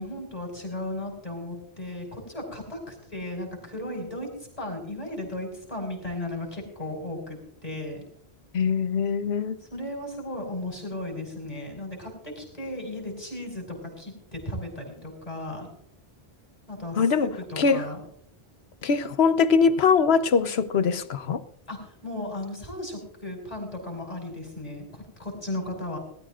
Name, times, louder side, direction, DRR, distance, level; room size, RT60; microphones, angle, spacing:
voice 1, 0.0-4.3 4.6-7.4 7.6-8.0 9.7-15.7 16.7-18.0 21.7-26.0, left 1 dB, 35° left, 5.1 m, -35 dB
voice 2, 8.5-9.6 17.0-17.9 18.8-21.4, left 5 dB, 80° left, 1.1 m, -22 dB
21.0 x 13.5 x 2.5 m
omnidirectional pair, 1.0 m